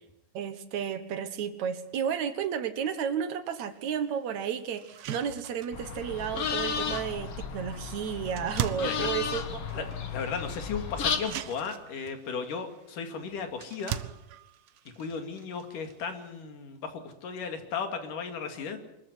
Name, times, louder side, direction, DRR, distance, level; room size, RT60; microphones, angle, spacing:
voice 1, 0.3-9.9, right 8 dB, 65° right, 11 dB, 2.5 m, -32 dB
sound 1, 3.7-3.8 4.3-4.4 4.8-16.4, right 10 dB, 80° right, 1.1 m, -42 dB
sound 2, 5.7-11.2, left 6 dB, 50° left, 2.4 m, -33 dB
voice 2, 8.8-9.1 9.7-9.8 10.1-14.0 15.0-18.8, left 5 dB, 75° left, 6 dB, 3.9 m, -35 dB
24.5 x 14.0 x 9.8 m, 0.88 s
omnidirectional pair, 3.8 m